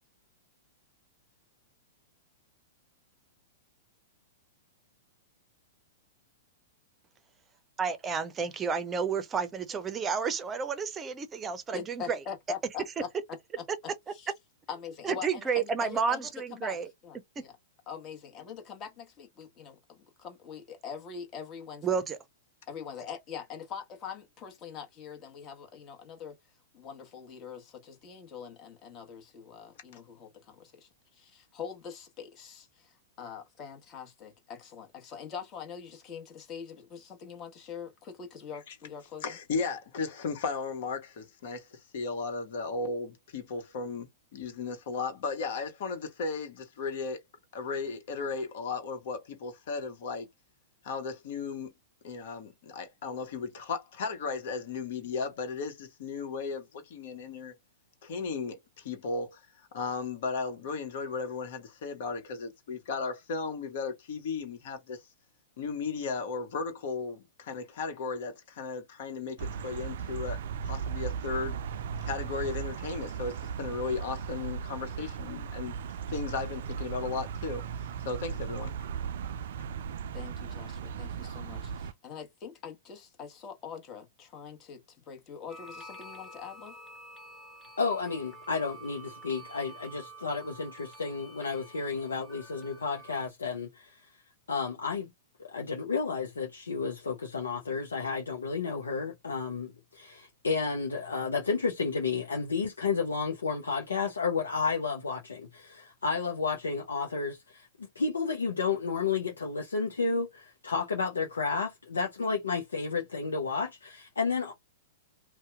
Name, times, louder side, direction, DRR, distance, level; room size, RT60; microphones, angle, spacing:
voice 1, 7.8-12.2 15.0-16.9 17.4-17.5 21.8-22.2, right 6 dB, 20° right, 0.6 m, -31 dB
voice 2, 11.7-13.1 14.1-14.3 14.7-16.2 16.5-16.8 17.0-17.5 17.9-21.9 22.7-26.4 26.7-39.4 80.1-86.8, left 7 dB, 30° left, 1.2 m, -43 dB
voice 3, 39.2-47.2 47.5-50.3 50.8-51.7 52.0-57.5 58.0-59.4 59.7-65.0 65.6-70.4 70.6-71.6 72.0-75.7 76.1-77.6 78.0-78.8, left 4 dB, 60° left, 1.2 m, -35 dB
sound 1, 69.4-81.9, right 7 dB, 60° right, 0.3 m, -37 dB
sound 2, 85.5-93.3, right 1 dB, 5° left, 1.5 m, -49 dB
voice 4, 87.8-94.0 94.5-95.1 95.4-114.5, left 5 dB, 80° left, 0.7 m, -32 dB
2.7 x 2.2 x 3.4 m
hypercardioid pair, 110°, 0 cm